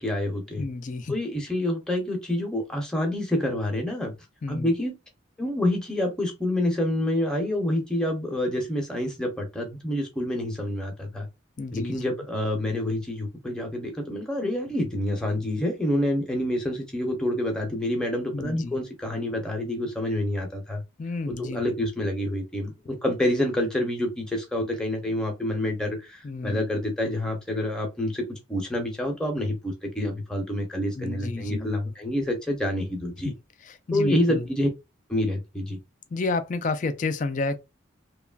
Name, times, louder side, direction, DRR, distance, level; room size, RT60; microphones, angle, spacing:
voice 1, 0.0-0.7 1.1-4.1 4.5-5.0 5.4-11.3 11.7-20.8 21.3-33.3 33.9-34.7 35.1-35.8, left 1 dB, 5° left, 0.7 m, -27 dB
voice 2, 0.6-1.2 4.4-4.7 11.6-12.0 18.3-18.8 21.0-21.7 26.2-26.6 31.0-31.7 33.2-33.3 33.6-34.5 36.1-37.6, left 3 dB, 40° left, 0.4 m, -30 dB
3.0 x 2.3 x 2.3 m
head